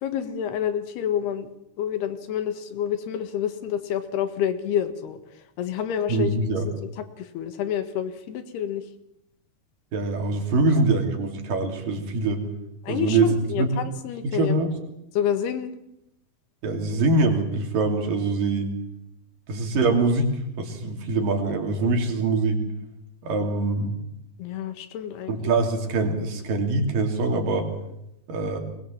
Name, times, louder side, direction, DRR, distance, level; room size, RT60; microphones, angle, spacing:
voice 1, 0.0-1.5 1.8-5.2 5.6-6.3 7.2-8.8 12.8-14.6 15.2-15.7 24.4-25.4, left 9 dB, 85° left, 9 dB, 3.6 m, -28 dB
voice 2, 6.1-6.7 9.9-12.4 12.9-13.7 14.2-14.7 16.6-18.7 19.5-22.6 23.2-24.0 25.3-27.7 28.3-28.6, right 3 dB, 60° right, 3 dB, 4.5 m, -23 dB
22.5 x 20.5 x 7.4 m, 0.81 s
omnidirectional pair, 4.5 m